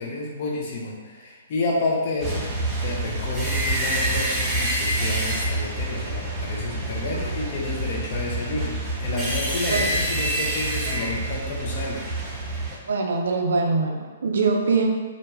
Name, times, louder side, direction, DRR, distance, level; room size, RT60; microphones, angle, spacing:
voice 1, 0.0-2.5 2.8-12.1, left 2 dB, 45° left, -2 dB, 0.6 m, -30 dB
sound 1, 2.2-12.7, right 1 dB, 15° right, 0.6 m, -27 dB
voice 2, 12.9-14.9, right 4 dB, 60° right, 1 dB, 0.4 m, -23 dB
2.5 x 2.2 x 3.1 m, 1.3 s
figure-of-eight pair, 120°, 0 cm